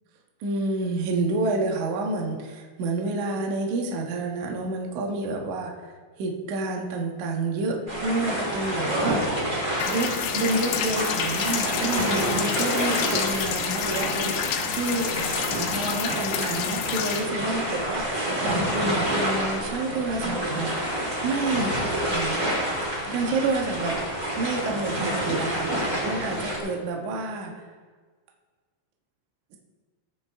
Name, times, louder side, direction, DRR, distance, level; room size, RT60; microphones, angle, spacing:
voice 1, 0.4-15.1 15.4-21.8 22.1-22.4 23.0-24.0 24.4-27.7, right 2 dB, 85° right, 1 dB, 1.7 m, -29 dB
sound 1, 7.9-26.6, right 1 dB, 20° right, 2.1 m, -28 dB
sound 2, 9.8-17.2, left 8 dB, 75° left, 3.0 m, -29 dB
Gong, 11.9-14.8, right 4 dB, 60° right, 4.7 m, -41 dB
20.0 x 6.8 x 3.5 m, 1.5 s
omnidirectional pair, 5.7 m